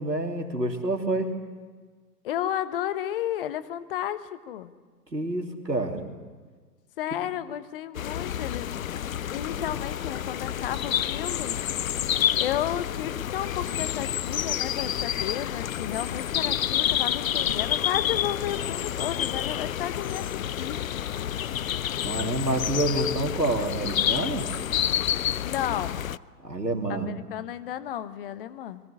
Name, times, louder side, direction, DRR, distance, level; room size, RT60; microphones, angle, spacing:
voice 1, 0.0-1.3 5.1-6.0 22.0-24.5 26.4-27.1, right 2 dB, 90° right, 3 dB, 3.0 m, -28 dB
voice 2, 2.2-4.7 7.0-8.8 9.3-11.6 12.4-20.8 25.4-26.1 26.9-28.8, left 11 dB, 35° left, 14 dB, 1.1 m, -32 dB
sound 1, 7.9-26.2, left 10 dB, 55° left, 0.6 m, -29 dB
21.5 x 16.5 x 9.7 m, 1.5 s
figure-of-eight pair, 115°, 49 cm